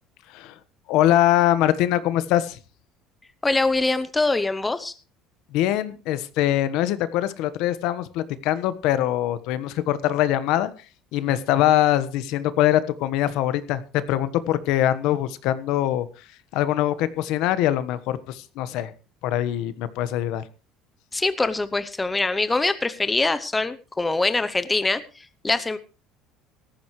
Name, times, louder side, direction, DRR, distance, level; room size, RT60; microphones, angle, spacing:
voice 1, 0.9-2.6 5.5-10.7 11.1-16.2 16.5-18.9 19.2-20.4, left 12 dB, 70° left, 14 dB, 1.3 m, -23 dB
voice 2, 3.4-4.9 21.1-25.8, left 3 dB, 10° left, 12 dB, 0.8 m, -24 dB
18.0 x 14.5 x 3.2 m, 0.33 s
cardioid pair, 145°, 0 cm